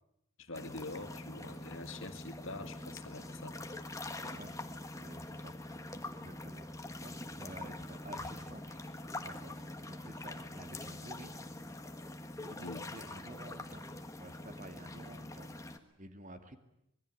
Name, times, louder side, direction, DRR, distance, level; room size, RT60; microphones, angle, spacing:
voice 1, 0.4-3.6 12.6-12.8, left 2 dB, 60° left, 8 dB, 2.2 m, -45 dB
sound 1, 0.5-15.8, left 2 dB, 15° left, 1.5 m, -44 dB
Piano, 2.7-9.1, left 1 dB, 15° right, 4.1 m, -66 dB
voice 2, 4.2-4.6 5.0-5.8 6.1-6.7 7.0-11.3 12.4-13.8 14.2-15.7 16.0-16.6, right 1 dB, 35° right, 8 dB, 2.1 m, -52 dB
26.0 x 21.0 x 9.5 m, 0.82 s
head